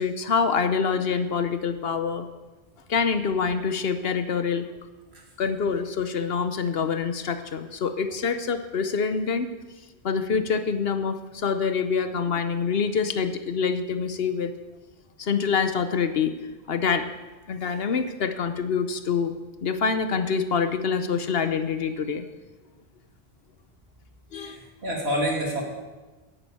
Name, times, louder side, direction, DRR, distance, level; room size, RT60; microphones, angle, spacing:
voice 1, 0.0-2.3 2.9-4.7 5.4-9.5 10.0-14.5 15.2-16.4 16.7-17.1 17.5-19.3 19.6-22.3 24.3-24.6, left 6 dB, 70° left, 10 dB, 1.0 m, -26 dB
voice 2, 24.3-25.6, equal, 80° right, -1 dB, 2.7 m, -28 dB
9.8 x 9.8 x 8.6 m, 1.2 s
omnidirectional pair, 1.0 m